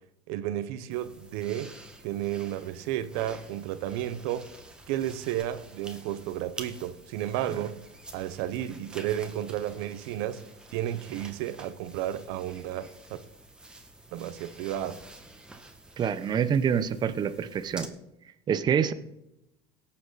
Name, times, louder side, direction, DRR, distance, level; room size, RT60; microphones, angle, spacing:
voice 1, 0.3-1.7 2.0-4.5 4.9-7.8 8.1-10.4 10.7-13.2 14.1-15.0, right 12 dB, 75° right, 1.0 m, -32 dB
sound 1, 0.9-17.9, right 2 dB, 5° right, 1.7 m, -48 dB
voice 2, 16.0-17.9 18.5-18.9, right 7 dB, 35° right, 0.8 m, -26 dB
17.5 x 7.7 x 4.1 m
supercardioid pair, 115°, 13 cm